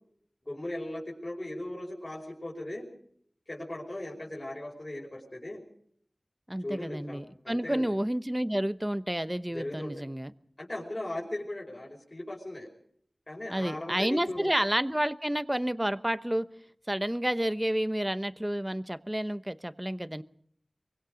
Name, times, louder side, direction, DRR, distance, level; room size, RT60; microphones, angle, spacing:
voice 1, 0.5-2.9 3.5-5.6 6.6-8.0 9.5-10.0 10.6-12.7 13.3-14.5, left 1 dB, 40° left, -4 dB, 5.5 m, -38 dB
voice 2, 6.5-10.3 13.5-16.5 16.9-20.2, right 1 dB, 15° right, 12 dB, 1.0 m, -30 dB
24.0 x 24.0 x 5.2 m, 0.63 s
wide cardioid pair, 60°, 0 cm